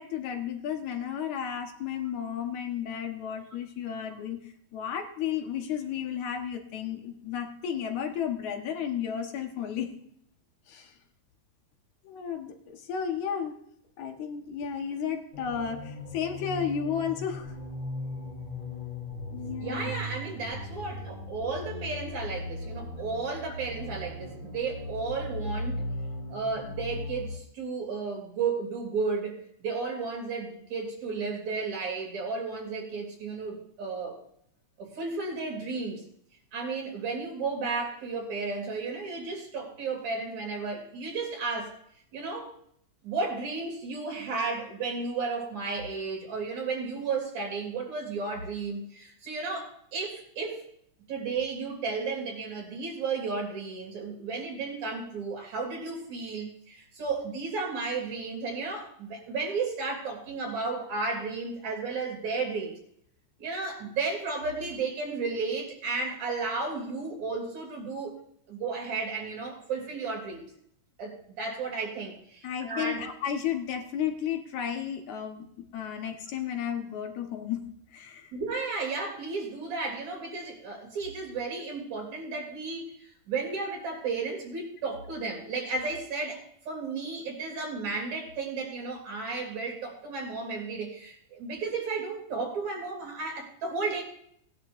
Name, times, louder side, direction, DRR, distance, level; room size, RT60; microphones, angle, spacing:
voice 1, 0.0-9.9 10.7-10.9 12.0-13.6 14.0-17.5 19.3-20.0 72.4-77.6 77.9-78.3, left 8 dB, 80° left, 4 dB, 2.7 m, -33 dB
sound 1, 15.3-27.4, left 1 dB, 30° left, 2.0 m, -38 dB
voice 2, 19.6-25.8 26.3-34.2 34.8-36.0 36.5-41.8 42.1-42.5 43.0-50.6 51.1-62.7 63.4-68.1 68.5-70.4 71.0-73.1 78.3-94.0, right 4 dB, 70° right, 1 dB, 4.2 m, -33 dB
19.5 x 10.5 x 2.6 m, 0.69 s
omnidirectional pair, 3.3 m